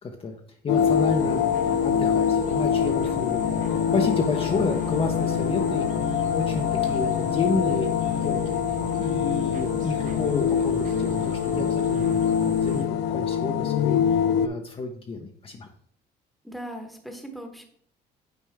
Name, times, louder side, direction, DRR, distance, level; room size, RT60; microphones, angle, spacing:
voice 1, 0.0-0.3 0.6-12.2 12.6-15.7, left 4 dB, 35° left, 3 dB, 0.7 m, -30 dB
sound 1, 0.7-14.5, left 8 dB, 80° left, 0.4 m, -24 dB
sound 2, 0.8-12.8, right 7 dB, 50° right, 0.6 m, -37 dB
voice 2, 16.4-17.7, equal, ahead, 5 dB, 1.1 m, -38 dB
8.7 x 4.3 x 3.5 m, 0.64 s
cardioid pair, 110°, 17 cm